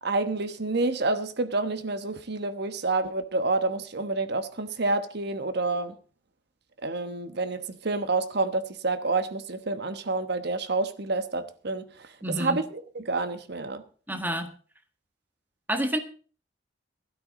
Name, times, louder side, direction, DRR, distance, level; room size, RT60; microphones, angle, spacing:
voice 1, 0.0-5.9 6.8-12.6 12.9-13.8, right 3 dB, 60° right, 1.2 m, -28 dB
voice 2, 12.2-12.6 14.1-14.5 15.7-16.0, equal, 10° right, 1.7 m, -28 dB
16.0 x 12.5 x 3.8 m
head